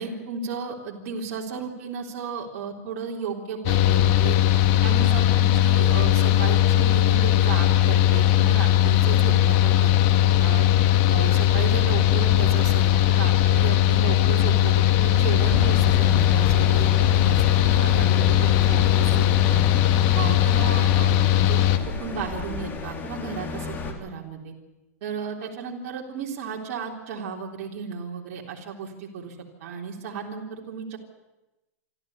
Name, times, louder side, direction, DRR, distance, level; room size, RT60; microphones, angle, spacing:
voice 1, 0.0-4.4 4.8-10.7 11.1-19.6 20.1-21.6 21.9-24.5 25.0-31.0, right 6 dB, 55° right, -1 dB, 3.7 m, -34 dB
Mechanical fan, 3.6-21.8, left 12 dB, 45° left, 1.8 m, -19 dB
sound 1, 15.4-23.9, left 4 dB, 25° left, 3.3 m, -32 dB
26.5 x 13.0 x 9.6 m, 1.0 s
hypercardioid pair, 135°, 8 cm